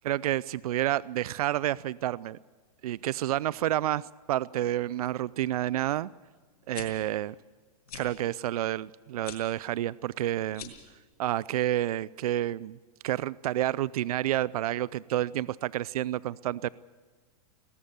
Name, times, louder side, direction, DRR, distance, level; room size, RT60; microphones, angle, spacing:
voice 1, 0.0-2.4 2.8-4.0 4.3-6.1 6.7-7.3 7.9-10.7 11.2-12.8 13.0-16.7, right 13 dB, 75° right, 21 dB, 0.5 m, -29 dB
sound 1, 6.5-6.9 7.9-8.1 9.2-9.4 10.5-10.9, left 9 dB, 75° left, 6.9 m, -42 dB
20.5 x 19.0 x 6.9 m, 1.4 s
hypercardioid pair, 125°, 19 cm